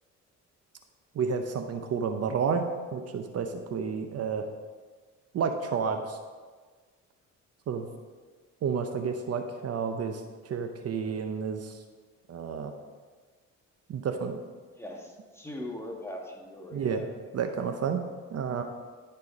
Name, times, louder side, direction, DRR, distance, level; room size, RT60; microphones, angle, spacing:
voice 1, 1.1-2.7 2.9-4.5 5.3-6.2 7.7-7.9 8.6-11.8 12.3-12.7 13.9-14.4 16.7-17.1 17.3-18.0 18.3-18.6, right 6 dB, 55° right, 6 dB, 0.8 m, -30 dB
voice 2, 14.8-17.4, left 1 dB, 10° left, 0 dB, 1.7 m, -41 dB
13.0 x 4.5 x 5.2 m, 1.4 s
cardioid pair, 90°, 30 cm